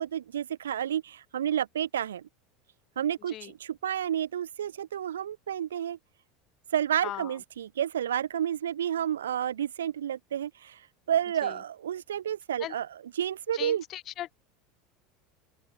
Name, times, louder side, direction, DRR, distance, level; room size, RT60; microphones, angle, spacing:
voice 1, 0.0-2.2 3.0-6.0 6.7-10.8 11.1-12.9 13.2-13.8, right 10 dB, 85° right, 2.2 m, -30 dB
voice 2, 7.0-7.4 11.4-11.6 12.6-12.7 13.5-14.3, left 13 dB, 45° left, 4.9 m, -38 dB
open air
hypercardioid pair, 80°, 0 cm